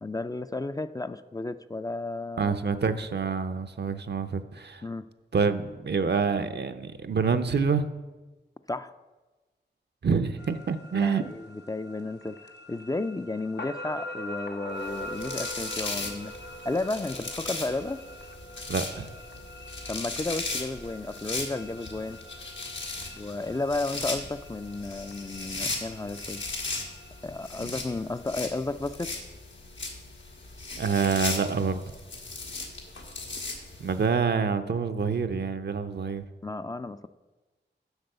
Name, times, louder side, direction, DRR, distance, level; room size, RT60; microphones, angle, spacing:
voice 1, 0.0-2.5 4.8-5.1 8.7-8.9 10.9-12.4 12.7-16.3 16.6-18.0 19.9-22.2 23.1-26.4 27.2-29.1 36.4-37.1, left 2 dB, 20° left, 11 dB, 0.3 m, -33 dB
voice 2, 2.4-4.8 5.3-7.8 10.0-11.3 18.7-19.1 30.8-31.8 33.8-36.2, right 5 dB, 65° right, 9 dB, 0.6 m, -27 dB
sound 1, 10.4-28.4, left 1 dB, 65° left, 0.9 m, -44 dB
sound 2, 14.8-34.0, left 3 dB, 85° left, 1.6 m, -37 dB
8.0 x 6.1 x 6.6 m, 1.2 s
wide cardioid pair, 55°, 19 cm